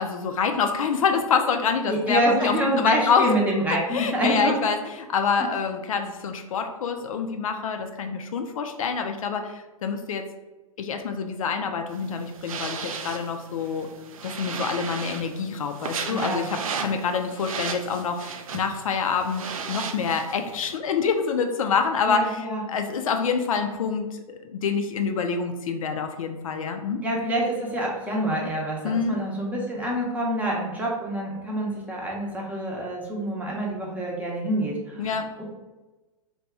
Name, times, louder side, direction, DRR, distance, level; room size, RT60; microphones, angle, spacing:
voice 1, 0.0-3.3 3.9-10.3 10.8-13.9 14.2-27.0 28.8-29.2 35.0-35.4, left 5 dB, 70° left, 6 dB, 0.4 m, -26 dB
voice 2, 1.9-4.6 16.1-16.4 22.1-22.6 27.0-35.2, right 1 dB, 10° right, -3 dB, 0.7 m, -26 dB
sound 1, 11.9-20.8, right 5 dB, 70° right, 0.4 m, -35 dB
2.8 x 2.2 x 3.5 m, 1.1 s
figure-of-eight pair, 110°, 18 cm